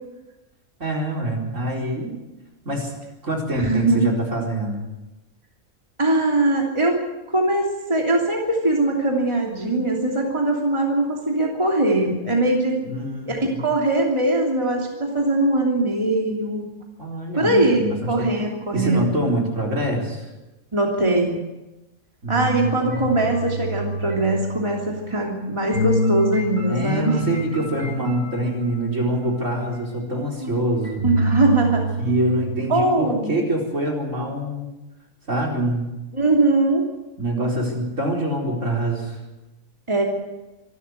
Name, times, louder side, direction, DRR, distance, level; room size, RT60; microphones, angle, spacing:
voice 1, 0.8-2.2 2.6-2.9 3.2-4.8 12.8-13.7 17.0-18.3 18.7-20.3 22.2-23.2 26.7-31.0 32.0-34.7 35.3-35.9 37.2-39.2, right 1 dB, 55° right, 1 dB, 4.8 m, -25 dB
voice 2, 3.5-4.1 6.0-7.0 7.3-12.8 13.3-16.7 17.4-19.1 20.7-21.4 22.3-27.2 30.4-30.6 31.0-31.9 32.7-33.4 36.1-36.9 39.9-40.0, right 2 dB, 20° right, -1 dB, 3.0 m, -21 dB
sound 1, 22.9-25.1 25.7-30.0 30.8-32.6, equal, 90° right, 7.6 m, -27 dB
25.5 x 13.0 x 8.1 m, 1.0 s
omnidirectional pair, 1.5 m